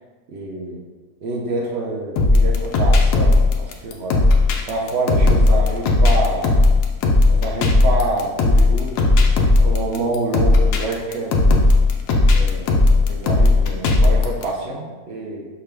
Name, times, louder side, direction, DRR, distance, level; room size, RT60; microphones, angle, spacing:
voice 1, 0.3-0.8 1.2-4.2 4.7-6.6 7.3-8.9 9.6-11.5 12.3-15.5, right 2 dB, 65° right, -1 dB, 0.6 m, -27 dB
sound 1, 2.2-14.4, left 2 dB, 85° left, 1.1 m, -15 dB
5.8 x 2.2 x 3.3 m, 1.3 s
omnidirectional pair, 1.6 m